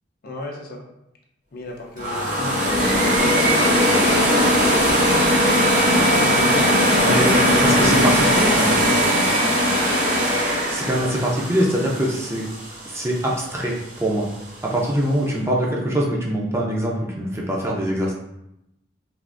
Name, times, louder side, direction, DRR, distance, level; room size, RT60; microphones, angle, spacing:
voice 1, 0.2-0.8 1.5-4.3 6.1-6.6, left 1 dB, 50° left, 1 dB, 0.5 m, -35 dB
sound 1, 2.0-13.0, equal, 40° right, 0.8 m, -19 dB
voice 2, 7.0-8.8 10.7-12.5 12.9-13.7 14.0-14.3 14.6-18.1, equal, 15° right, -3 dB, 0.4 m, -23 dB
3.4 x 2.4 x 2.5 m, 0.84 s
head